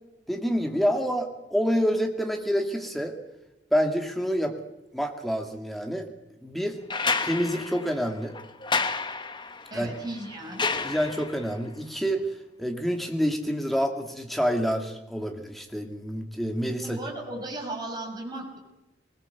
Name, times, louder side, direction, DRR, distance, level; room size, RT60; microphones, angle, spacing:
voice 1, 0.3-3.1 3.7-4.5 4.9-6.1 6.4-6.8 7.2-8.3 9.7-9.9 10.8-12.2 12.6-17.0, equal, ahead, 3 dB, 2.3 m, -27 dB
sound 1, 6.9-11.5 13.1-13.2, left 4 dB, 25° left, 1.1 m, -31 dB
voice 2, 9.7-10.7 16.8-18.6, right 2 dB, 25° right, -1 dB, 6.2 m, -36 dB
21.0 x 20.5 x 7.0 m, 0.98 s
head